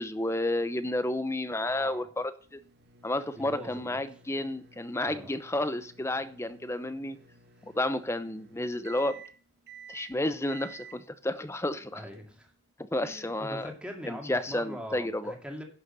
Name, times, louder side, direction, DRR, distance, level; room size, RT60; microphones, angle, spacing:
voice 1, 0.0-2.6 3.0-7.2 7.6-9.2 9.9-12.0 12.9-13.7 14.0-15.3, left 1 dB, 10° left, 12 dB, 0.7 m, -31 dB
voice 2, 1.6-2.1 3.4-4.0 5.0-5.3 11.9-12.5 13.0-15.6, equal, 5° right, 2 dB, 2.2 m, -42 dB
sound 1, 2.4-12.7, right 5 dB, 50° right, 1.2 m, -53 dB
11.0 x 6.5 x 6.8 m, 0.41 s
head